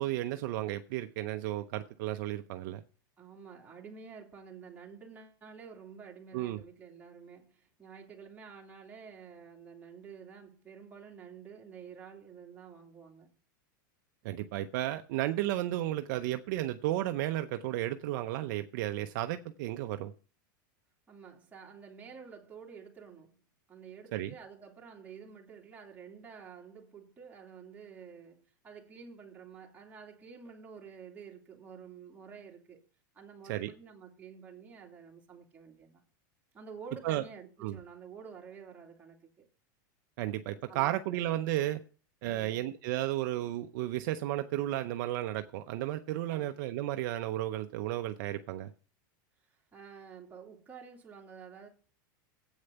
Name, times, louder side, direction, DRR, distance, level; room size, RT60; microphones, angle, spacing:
voice 1, 0.0-2.8 6.3-6.6 14.2-20.1 24.1-24.3 33.4-33.7 37.0-37.2 37.6-37.8 40.2-41.8 42.2-48.7, right 14 dB, 60° right, 0.6 m, -33 dB
voice 2, 3.2-13.3 21.1-23.4 23.7-32.9 33.1-36.0 36.5-39.5 40.7-41.2 46.3-46.6 49.4-51.7, right 6 dB, 15° right, 2.4 m, -50 dB
8.2 x 6.4 x 6.8 m
supercardioid pair, 135°, 11 cm